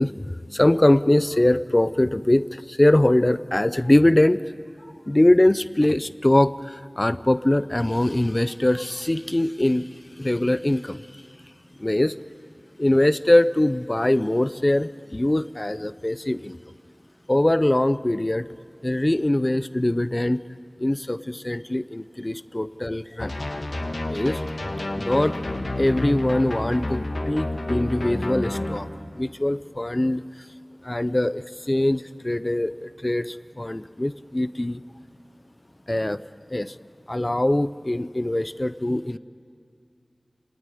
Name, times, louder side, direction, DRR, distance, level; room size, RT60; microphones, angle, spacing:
voice 1, 0.0-4.4 5.1-9.9 10.2-11.0 11.8-12.1 12.8-16.6 17.3-18.5 18.8-20.4 20.8-23.3 24.0-24.4 24.9-25.4 25.8-28.9 29.1-30.5 30.8-34.8 35.9-36.2 36.5-36.8 37.1-39.2, left 1 dB, 30° left, 14 dB, 0.6 m, -22 dB
sound 1, 23.2-28.8, left 1 dB, 75° left, 2.1 m, -29 dB
28.0 x 18.0 x 9.8 m, 2.4 s
wide cardioid pair, 50°, 0 cm